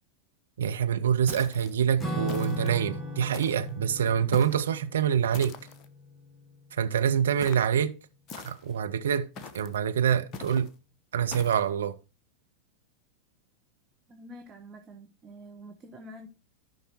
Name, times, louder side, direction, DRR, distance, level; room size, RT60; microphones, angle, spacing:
voice 1, 0.6-5.5 6.8-8.0 8.4-9.3 9.5-10.7 11.1-12.0, right 8 dB, 65° right, 0.8 m, -26 dB
sound 1, 1.3-1.7 2.3-2.8 3.3-3.7 4.3-4.7 5.3-5.9 7.4-7.7 8.3-8.8 9.4-9.8 10.3-10.7 11.3-11.7, left 5 dB, 35° left, 1.0 m, -42 dB
Acoustic guitar / Strum, 2.0-6.8, equal, ahead, 1.7 m, -38 dB
voice 2, 14.1-16.3, equal, 25° right, 1.1 m, -47 dB
13.5 x 5.6 x 2.9 m
figure-of-eight pair, 90°, 0 cm